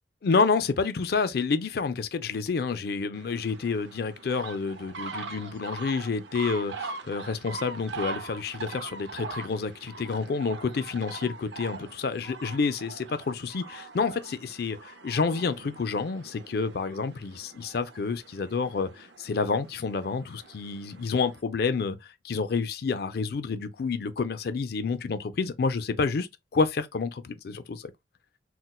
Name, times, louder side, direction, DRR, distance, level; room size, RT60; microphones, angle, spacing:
voice 1, 0.2-22.0 22.2-27.8, left 4 dB, 60° left, 0.4 m, -29 dB
sound 1, 3.1-21.4, right 4 dB, 85° right, 0.5 m, -42 dB
4.1 x 2.2 x 2.2 m
head